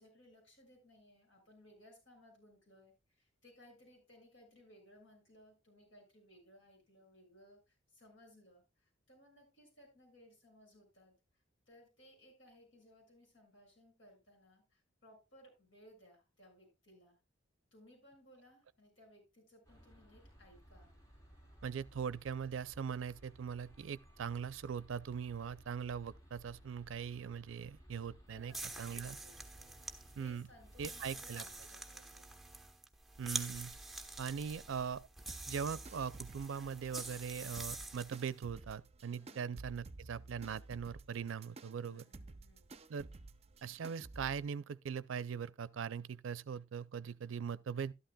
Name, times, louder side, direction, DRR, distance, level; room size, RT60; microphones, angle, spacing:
voice 1, 0.0-11.2 11.7-17.2 17.7-20.9 28.3-29.8 30.2-32.2 39.2-39.5 41.8-42.7, equal, 75° left, 6.5 m, -62 dB
sound 1, 19.6-31.7, equal, 20° left, 3.5 m, -60 dB
voice 2, 21.6-28.5 28.8-29.2 30.2-30.5 30.8-31.4 33.2-33.8 34.2-35.0 35.5-42.0 42.9-43.1 43.6-47.9, right 7 dB, 85° right, 0.4 m, -41 dB
sound 2, 28.5-38.4, right 2 dB, ahead, 1.0 m, -47 dB
sound 3, 35.3-44.4, right 2 dB, 35° right, 0.5 m, -53 dB
12.5 x 11.5 x 2.2 m
head